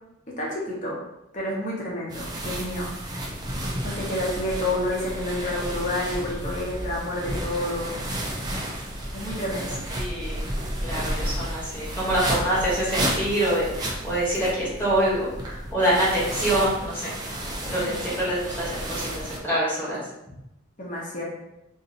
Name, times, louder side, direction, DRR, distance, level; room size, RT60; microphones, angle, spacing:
voice 1, 0.4-1.0 1.3-2.9 3.8-8.0 9.1-9.8 17.8-18.0 20.8-21.2, left 1 dB, 35° left, -4 dB, 0.9 m, -29 dB
sound 1, 2.1-19.4, right 1 dB, 20° right, 0.4 m, -32 dB
voice 2, 9.9-10.5 10.8-17.1 17.7-20.0, right 1 dB, 10° left, -8 dB, 1.1 m, -25 dB
2.7 x 2.5 x 4.0 m, 0.89 s
head